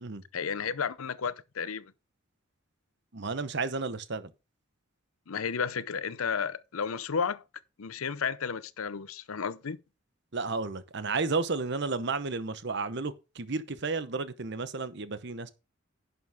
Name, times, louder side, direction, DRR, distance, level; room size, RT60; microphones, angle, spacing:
voice 1, 0.3-1.9 5.3-7.4 7.8-9.8, left 6 dB, 90° left, 0.7 m, -32 dB
voice 2, 3.1-4.3 10.3-15.5, right 4 dB, 55° right, 0.9 m, -32 dB
11.0 x 6.9 x 3.6 m
head